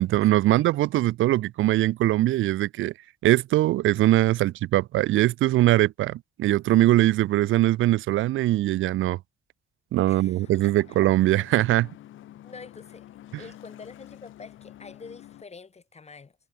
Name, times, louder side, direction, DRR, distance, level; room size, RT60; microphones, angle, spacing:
voice 1, 0.0-2.9 3.2-9.2 9.9-11.9, right 15 dB, 80° right, 0.9 m, -21 dB
voice 2, 10.1-11.0 12.4-13.1 13.4-16.4, left 4 dB, 35° left, 7.4 m, -46 dB
sound 1, 10.4-15.4, left 13 dB, 80° left, 5.4 m, -48 dB
cardioid pair, 90°, 20 cm